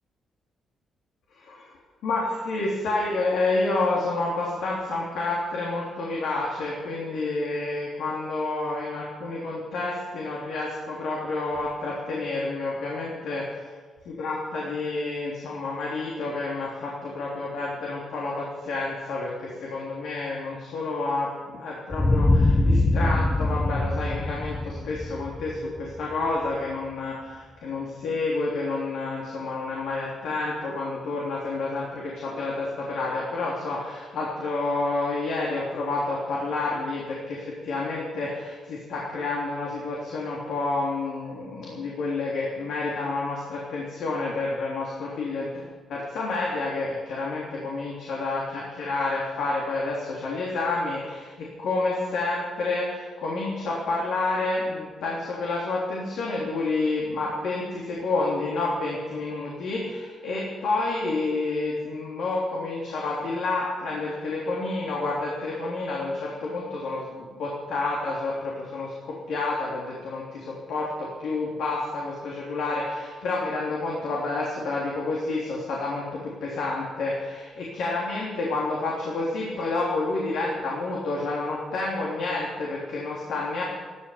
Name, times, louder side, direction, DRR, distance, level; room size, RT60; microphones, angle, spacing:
voice 1, 1.4-1.7 2.0-13.7 14.0-68.9 69.3-83.6, left 3 dB, 80° left, -4 dB, 3.4 m, -29 dB
sound 1, 21.9-26.5, left 2 dB, 15° left, 0.9 m, -23 dB
14.0 x 13.0 x 7.2 m, 1.4 s
cardioid pair, 90°, 0 cm